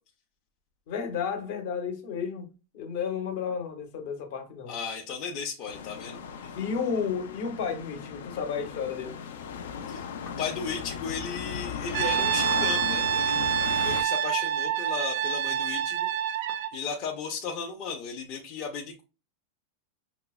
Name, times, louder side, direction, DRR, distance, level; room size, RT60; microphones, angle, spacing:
voice 1, 0.9-2.5 2.7-4.7 6.6-9.2, left 6 dB, 55° left, 0.9 m, -32 dB
voice 2, 4.7-6.6 9.9-10.1 10.4-16.1 16.7-19.0, left 5 dB, 40° left, 0.6 m, -35 dB
sound 1, 5.7-14.0, left 7 dB, 90° left, 0.5 m, -37 dB
Brass instrument, 11.9-16.8, right 9 dB, 65° right, 0.4 m, -27 dB
5.6 x 2.0 x 2.3 m
supercardioid pair, 160°, 0 cm